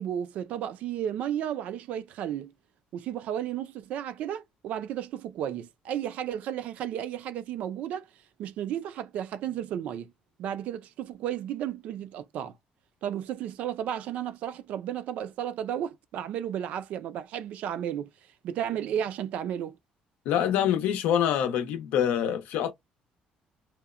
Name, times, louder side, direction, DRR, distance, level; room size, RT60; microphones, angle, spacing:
voice 1, 0.0-2.5 2.9-8.1 8.4-10.1 10.4-12.5 13.0-18.1 18.4-19.8, right 10 dB, 55° right, 0.3 m, -33 dB
voice 2, 20.3-22.7, left 9 dB, 90° left, 0.6 m, -25 dB
2.7 x 2.0 x 2.4 m
cardioid pair, 175°, 3 cm